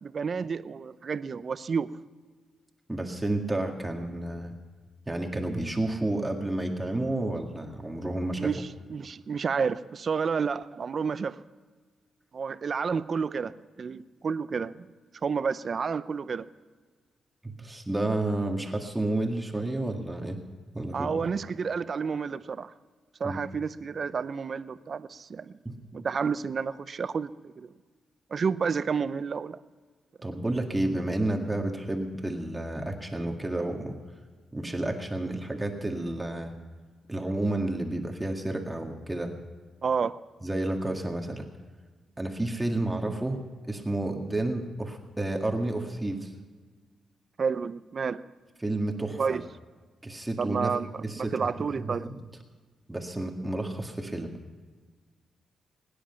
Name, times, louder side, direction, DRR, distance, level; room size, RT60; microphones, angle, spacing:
voice 1, 0.0-1.9 8.3-11.4 12.3-14.9 15.2-16.4 20.9-22.7 23.2-25.6 25.9-27.7 28.3-29.6 39.8-40.1 47.4-48.2 49.2-49.4 50.4-52.1, right 5 dB, 50° right, 14 dB, 0.7 m, -30 dB
voice 2, 2.9-4.5 5.1-8.5 17.6-20.4 20.7-21.3 23.2-23.4 25.7-25.8 30.2-34.0 34.5-36.5 37.1-39.3 40.4-41.5 42.2-43.4 43.7-46.3 48.6-49.4 50.0-50.8 51.0-51.5 51.8-52.2 52.9-54.3, right 2 dB, 15° right, 2 dB, 1.9 m, -30 dB
22.5 x 10.5 x 5.7 m, 1.4 s
cardioid pair, 90°, 0 cm